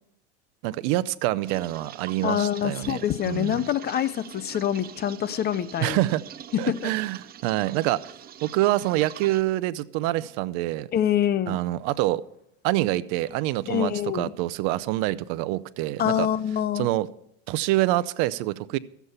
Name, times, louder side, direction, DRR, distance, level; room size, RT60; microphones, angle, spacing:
voice 1, 0.6-3.6 5.8-6.2 6.6-8.1 8.4-10.9 11.5-12.2 12.6-16.3 16.8-17.1 17.5-18.8, right 16 dB, 65° right, 0.7 m, -26 dB
sound 1, 1.4-9.4, right 10 dB, 25° right, 0.5 m, -43 dB
voice 2, 2.2-6.0 6.5-6.9 10.9-11.6 13.7-14.3 16.0-16.9, left 10 dB, 30° left, 0.5 m, -25 dB
14.0 x 8.2 x 5.6 m
supercardioid pair, 130°, 35 cm